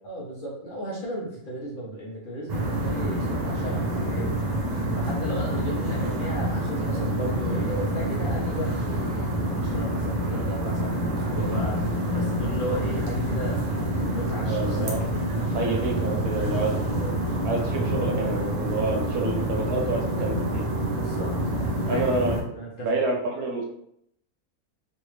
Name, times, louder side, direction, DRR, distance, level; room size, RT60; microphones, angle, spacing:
voice 1, 0.0-4.3 4.9-13.6 13.9-15.0 16.6-16.9 18.8-19.3 20.8-21.3 21.8-22.0 22.5-23.0, equal, 45° left, -5 dB, 0.7 m, -35 dB
sound 1, 2.5-22.4, right 1 dB, 50° right, 0.5 m, -27 dB
voice 2, 14.5-15.0 15.5-17.1 17.4-20.7 21.9-22.4 22.8-23.7, right 3 dB, 90° right, 0 dB, 1.3 m, -28 dB
3.2 x 2.5 x 3.1 m, 0.72 s
omnidirectional pair, 1.6 m